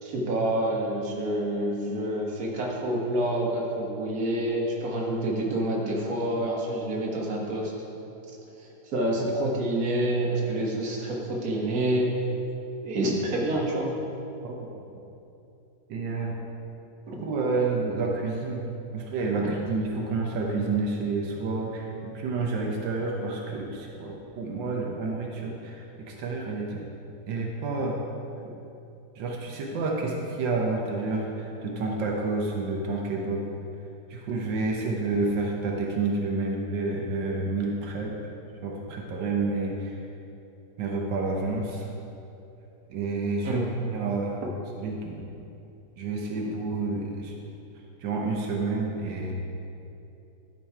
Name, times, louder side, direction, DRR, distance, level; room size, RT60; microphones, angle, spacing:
voice 1, 0.0-7.7 8.6-12.1 12.8-14.0 17.0-17.2 19.4-19.5 43.4-43.7, right 1 dB, 55° right, -2 dB, 1.7 m, -28 dB
voice 2, 15.9-16.4 17.2-18.6 18.9-26.8 27.3-28.0 29.2-33.5 34.1-38.2 38.6-40.0 40.8-41.9 42.9-43.6 43.9-44.4 44.8-45.2 46.0-47.3 48.0-49.3, right 3 dB, 85° right, 0 dB, 1.6 m, -29 dB
12.0 x 4.6 x 4.7 m, 2.8 s
omnidirectional pair, 1.9 m